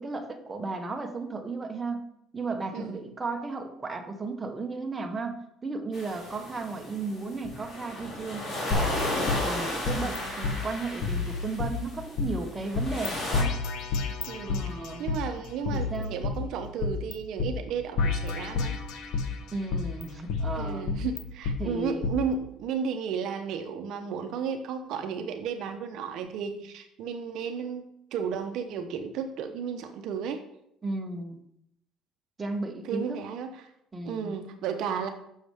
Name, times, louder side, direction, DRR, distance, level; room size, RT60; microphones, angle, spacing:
voice 1, 0.0-2.0 2.3-9.1 9.4-13.5 14.4-15.2 15.7-16.1 19.5-20.9 21.6-22.1 30.8-31.4 32.4-33.2 33.9-34.4, right 3 dB, 20° right, 4 dB, 0.9 m, -34 dB
voice 2, 2.7-3.1 9.9-10.3 14.3-14.6 15.0-18.8 19.1-19.2 20.6-27.8 28.1-30.4 32.8-33.7 34.1-35.1, right 6 dB, 65° right, 7 dB, 0.7 m, -33 dB
sound 1, 5.9-13.4, left 1 dB, 35° left, 2.4 m, -35 dB
sound 2, 8.7-10.2 10.4-10.5 11.0-12.3 12.7-13.1 13.3-15.2 15.6-17.1 17.4-17.5 18.0-19.3 19.7-21.6 22.0-22.1, left 4 dB, 65° left, 1.0 m, -30 dB
7.0 x 6.4 x 3.4 m, 0.78 s
cardioid pair, 120°, 0 cm